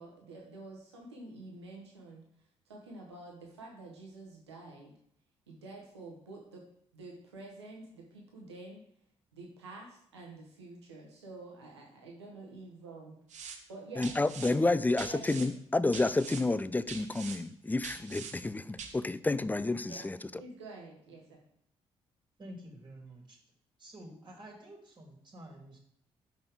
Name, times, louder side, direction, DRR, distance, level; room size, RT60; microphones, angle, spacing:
voice 1, 0.0-2.2 2.6-4.9 5.5-6.6 6.9-8.8 9.3-13.2 13.7-14.1 14.5-14.6 15.0-15.5 19.9-20.1 20.4-21.4, right 2 dB, 90° right, -1 dB, 1.0 m, -48 dB
sound 1, 13.3-13.6 14.0-14.5 15.0-15.5 15.9-16.4 16.9-17.4 17.8-18.3 18.8-18.9, right 6 dB, 60° right, 1.1 m, -43 dB
voice 2, 14.0-20.2, left 2 dB, 10° left, 16 dB, 0.4 m, -30 dB
voice 3, 22.4-23.4 23.8-25.8, right 1 dB, 35° right, 0 dB, 1.8 m, -49 dB
5.8 x 5.2 x 3.5 m, 0.70 s
figure-of-eight pair, 40°, 14 cm